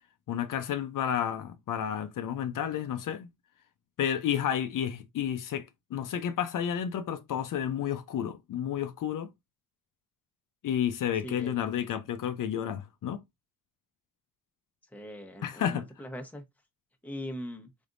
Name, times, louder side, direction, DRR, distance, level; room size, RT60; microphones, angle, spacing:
voice 1, 0.3-3.3 4.0-9.3 10.6-13.2 15.4-15.8, left 9 dB, 70° left, 0.6 m, -31 dB
voice 2, 11.2-11.6 14.9-16.4 17.0-17.7, equal, 5° left, 1.0 m, -40 dB
4.0 x 3.4 x 2.5 m
cardioid pair, 80°, 33 cm